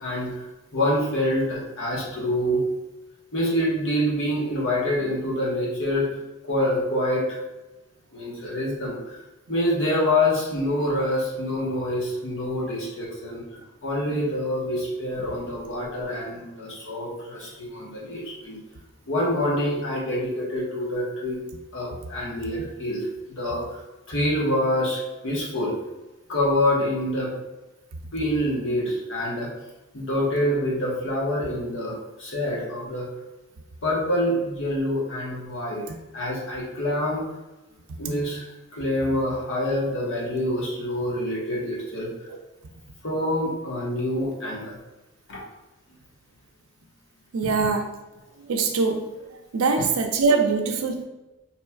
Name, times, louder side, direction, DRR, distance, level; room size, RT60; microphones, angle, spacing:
voice 1, 0.0-2.6 3.3-7.4 8.1-9.2 9.5-13.4 13.8-18.6 19.1-21.4 21.7-23.8 24.1-25.8 26.3-27.3 28.1-29.5 29.9-33.1 33.8-35.8 36.1-37.2 38.0-42.3 43.0-44.8 45.3-45.4, left 1 dB, 65° left, -3 dB, 1.1 m, -26 dB
voice 2, 47.3-47.9 48.4-49.3 49.5-51.0, right 4 dB, 90° right, 3 dB, 0.4 m, -23 dB
4.3 x 3.0 x 2.3 m, 1.1 s
head